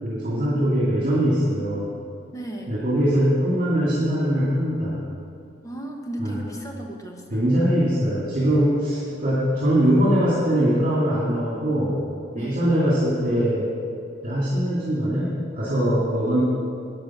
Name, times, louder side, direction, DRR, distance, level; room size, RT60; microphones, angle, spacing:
voice 1, 0.0-1.9 2.7-5.0 6.2-6.4 7.3-12.0 12.3-13.7 14.2-16.4, equal, 45° right, -7 dB, 2.1 m, -22 dB
voice 2, 2.3-2.8 5.6-7.5 12.4-12.7, right 1 dB, 20° left, 1 dB, 1.3 m, -35 dB
10.0 x 8.9 x 6.0 m, 2.5 s
head